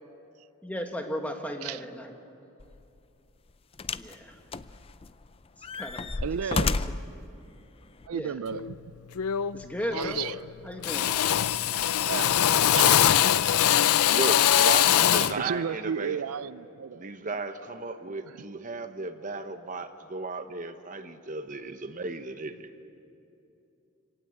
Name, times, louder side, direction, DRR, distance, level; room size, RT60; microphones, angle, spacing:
voice 1, 0.6-2.1 4.0-4.4 5.6-6.8 8.1-8.4 9.5-10.3 10.6-11.2, equal, 5° left, 1.4 m, -36 dB
sound 1, 2.6-2.8 3.8-4.2 4.5-5.2 5.6-7.1 8.0-8.1, left 3 dB, 25° left, 0.4 m, -31 dB
voice 2, 6.2-6.8 8.1-8.8 9.9-10.3 12.1-13.9 15.2-17.1, right 7 dB, 80° right, 0.4 m, -34 dB
Drill, 8.5-8.7 9.2-9.7 9.9-10.5 10.8-15.4, left 11 dB, 80° left, 0.5 m, -22 dB
voice 3, 14.1-16.2 16.9-22.7, right 3 dB, 35° right, 1.0 m, -35 dB
26.0 x 18.0 x 7.9 m
head